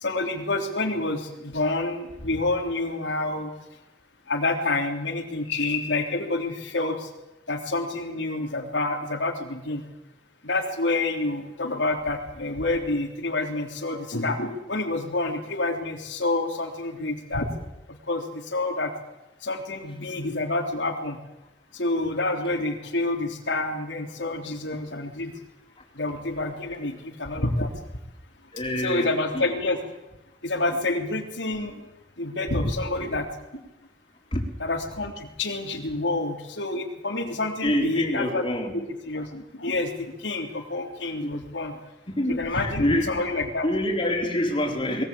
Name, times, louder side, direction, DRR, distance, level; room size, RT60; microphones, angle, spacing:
voice 1, 0.0-3.5 4.3-7.1 7.5-9.8 10.4-17.5 17.9-18.9 19.4-21.2 21.7-25.3 25.9-27.7 28.8-29.8 30.4-31.8 32.2-33.6 34.6-38.4 38.7-41.8 42.3-43.7, left 2 dB, 85° left, 1 dB, 3.4 m, -28 dB
voice 2, 28.5-29.5 34.3-34.4 37.6-38.7 41.2-41.3 42.1-43.2 43.6-45.0, left 1 dB, 30° left, 1 dB, 4.2 m, -26 dB
21.5 x 19.0 x 8.6 m, 1.0 s
head